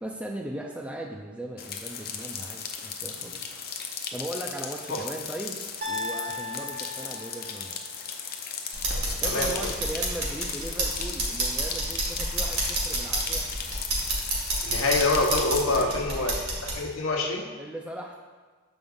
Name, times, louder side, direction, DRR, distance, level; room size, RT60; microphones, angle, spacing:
voice 1, 0.0-3.4 4.1-5.6 5.9-7.8 9.2-13.5 15.5-16.4 17.6-18.1, right 1 dB, 5° right, -1 dB, 0.4 m, -38 dB
sound 1, 1.6-15.8, left 6 dB, 50° left, 0.6 m, -37 dB
sound 2, 5.8-7.9, left 2 dB, 50° right, 0.8 m, -36 dB
sound 3, 8.7-16.8, right 2 dB, 80° right, 2.0 m, -29 dB
voice 2, 9.2-9.7 14.6-16.3 16.7-17.4, left 2 dB, 75° left, 1 dB, 1.0 m, -25 dB
6.8 x 5.3 x 3.6 m, 1.4 s
head